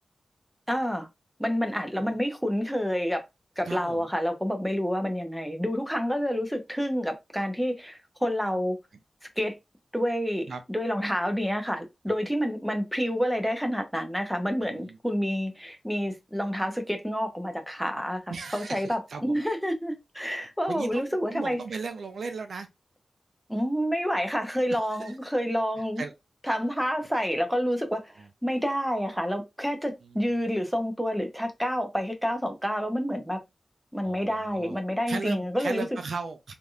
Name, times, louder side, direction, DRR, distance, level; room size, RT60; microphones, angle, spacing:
voice 1, 0.7-1.1 1.4-3.2 3.6-8.8 9.4-9.6 9.9-18.2 18.5-21.6 23.5-26.0 26.5-28.1 28.4-33.4 33.9-35.9, equal, ahead, 0.7 m, -28 dB
voice 2, 3.7-4.1 10.5-10.6 14.6-15.0 18.3-19.4 20.7-22.7 24.7-25.2 26.0-26.1 28.2-28.3 30.0-30.5 34.0-34.8 35.1-36.5, right 4 dB, 80° right, 0.5 m, -37 dB
3.3 x 2.6 x 2.3 m
wide cardioid pair, 115°, 0 cm